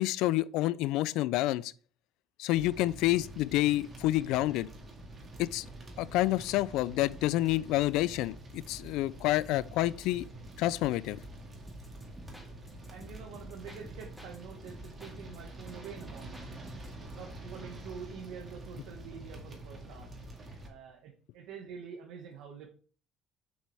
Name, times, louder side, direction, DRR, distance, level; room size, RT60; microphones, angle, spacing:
voice 1, 0.0-1.7 2.4-4.7 5.4-5.7 6.0-10.3 10.6-11.2, left 16 dB, 70° left, 0.4 m, -28 dB
sound 1, 2.5-20.7, right 1 dB, 20° right, 2.0 m, -47 dB
sound 2, 11.7-14.4 14.7-17.0, equal, ahead, 1.5 m, -50 dB
voice 2, 12.9-16.5 16.9-20.1 20.6-22.7, right 6 dB, 70° right, 1.7 m, -46 dB
7.4 x 7.2 x 3.5 m
cardioid pair, 175°, 0 cm